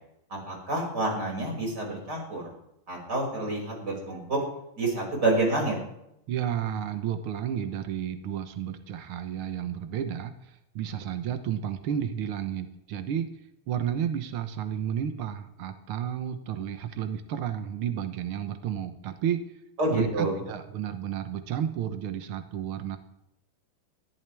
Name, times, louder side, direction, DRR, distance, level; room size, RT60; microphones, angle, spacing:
voice 1, 0.5-2.4 2.9-4.4 4.8-5.8 19.8-20.3, right 2 dB, 30° right, -1 dB, 6.5 m, -28 dB
voice 2, 6.3-13.3 13.7-19.4 19.9-23.0, right 9 dB, 75° right, 7 dB, 1.2 m, -32 dB
22.0 x 14.5 x 3.5 m, 0.82 s
omnidirectional pair, 3.8 m